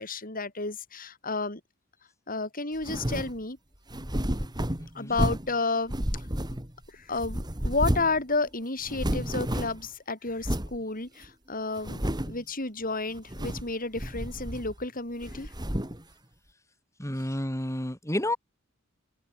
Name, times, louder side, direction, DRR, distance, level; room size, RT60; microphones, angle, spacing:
voice 1, 0.0-1.6 2.3-3.6 4.9-6.3 6.9-15.5, left 3 dB, 45° left, 7.6 m, -31 dB
sound 1, 2.8-3.4 3.9-5.6 5.9-6.9 7.2-8.2 8.5-8.6 8.8-9.9 10.4-10.8 11.2-11.3 11.8-12.4 13.2-13.7 14.0-14.9 15.2-16.0, equal, 20° right, 3.4 m, -31 dB
voice 2, 4.8-5.2 17.0-18.4, left 1 dB, 15° left, 6.4 m, -31 dB
open air
head